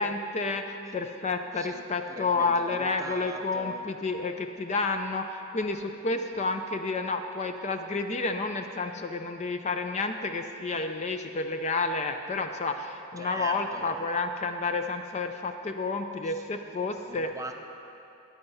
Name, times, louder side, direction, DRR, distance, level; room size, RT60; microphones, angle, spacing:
voice 1, 0.0-17.3, left 3 dB, 30° left, 7 dB, 0.4 m, -30 dB
voice 2, 2.1-3.8 13.2-14.0 16.2-16.3 16.6-17.6, right 2 dB, 15° right, 3 dB, 0.7 m, -41 dB
13.5 x 9.5 x 5.6 m, 2.8 s
head